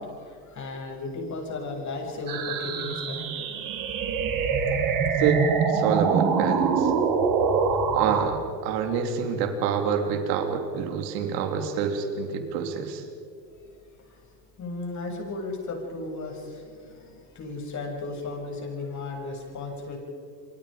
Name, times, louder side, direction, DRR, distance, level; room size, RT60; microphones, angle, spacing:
voice 1, 0.0-3.5 14.1-14.2 14.6-20.0, left 3 dB, 35° left, 1 dB, 7.7 m, -35 dB
sound 1, 2.3-8.3, right 5 dB, 40° right, 4.5 m, -25 dB
voice 2, 5.2-6.9 7.9-13.0, right 6 dB, 75° right, 5 dB, 3.6 m, -27 dB
28.5 x 24.0 x 5.2 m, 2.4 s
supercardioid pair, 110°, 49 cm